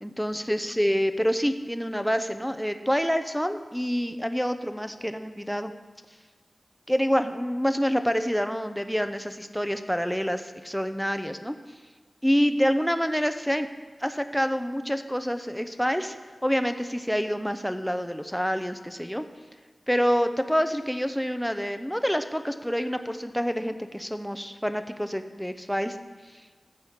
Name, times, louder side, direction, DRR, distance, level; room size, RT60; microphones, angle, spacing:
voice 1, 0.0-5.7 6.9-11.6 12.2-13.7 14.0-16.2 16.4-19.2 19.9-26.0, equal, ahead, 9 dB, 0.7 m, -27 dB
13.0 x 5.6 x 8.1 m, 1.4 s
wide cardioid pair, 85°, 0 cm